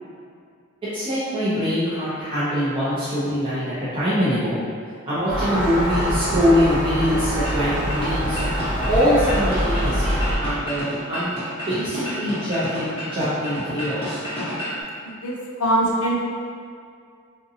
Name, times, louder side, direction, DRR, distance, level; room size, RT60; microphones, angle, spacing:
voice 1, 0.8-4.6 5.1-8.4 8.9-11.4 11.7-14.2, equal, 25° right, -13 dB, 0.7 m, -23 dB
Gull seagull, 5.3-10.3, equal, 5° right, 1.1 m, -24 dB
sound 1, 7.4-14.8, equal, 30° left, 1.1 m, -31 dB
voice 2, 15.0-16.3, right 1 dB, 75° left, -2 dB, 0.6 m, -23 dB
3.7 x 2.6 x 2.7 m, 2.2 s
head